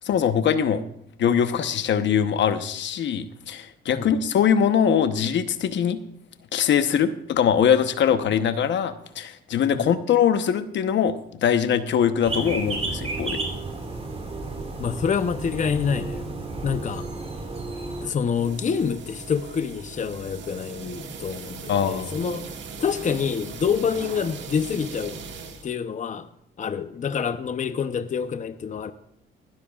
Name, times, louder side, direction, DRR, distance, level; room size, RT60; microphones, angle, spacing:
voice 1, 0.0-0.8 1.2-6.0 6.5-11.1 11.4-13.4 21.7-22.1, left 8 dB, 65° left, 1.0 m, -22 dB
sound 1, 12.2-18.1, right 2 dB, 30° right, 3.0 m, -32 dB
voice 2, 14.8-17.1 18.0-22.5 22.8-25.2 25.6-26.3 26.6-28.9, left 6 dB, 40° left, 0.8 m, -27 dB
sound 2, 18.2-25.7, right 5 dB, 65° right, 1.9 m, -39 dB
19.5 x 12.5 x 2.4 m
cardioid pair, 90°, 20 cm